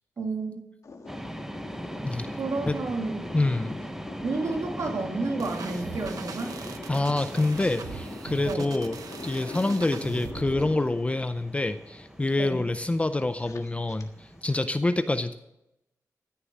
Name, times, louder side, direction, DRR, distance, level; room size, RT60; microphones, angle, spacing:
voice 1, 0.2-0.6 2.4-3.2 4.2-6.6 8.5-8.7 12.4-12.7, right 3 dB, 65° right, 2 dB, 2.5 m, -31 dB
sound 1, 0.8-14.6, left 3 dB, 60° left, 1.6 m, -44 dB
sound 2, 1.0-14.7, right 1 dB, 5° right, 0.8 m, -40 dB
voice 2, 3.3-3.8 6.9-9.0 9.2-15.3, left 2 dB, 20° left, 10 dB, 0.6 m, -26 dB
sound 3, 5.4-10.7, right 5 dB, 90° right, 1.1 m, -41 dB
14.5 x 6.8 x 7.4 m, 0.88 s
wide cardioid pair, 85°, 6 cm